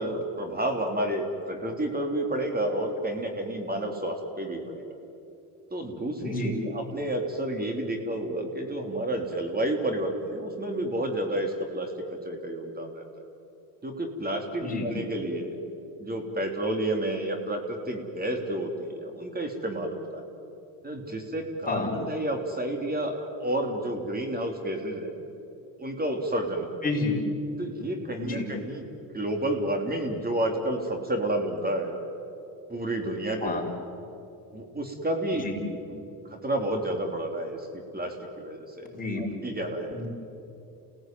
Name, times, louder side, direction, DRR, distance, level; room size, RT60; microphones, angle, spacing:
voice 1, 0.0-4.8 5.7-13.1 13.8-15.6 16.0-20.2 20.8-25.2 25.8-26.7 27.6-28.9 29.1-32.0 32.7-33.7 34.5-35.5 35.9-36.0 36.3-40.0, right 1 dB, 20° right, 4 dB, 3.4 m, -30 dB
voice 2, 6.2-6.5 14.6-14.9 21.7-21.9 26.8-27.2 28.2-28.4 33.4-33.6 35.4-35.5 38.9-39.4 39.9-40.1, left 3 dB, 20° left, -1 dB, 5.9 m, -29 dB
28.5 x 18.0 x 9.3 m, 2.8 s
supercardioid pair, 85°, 42 cm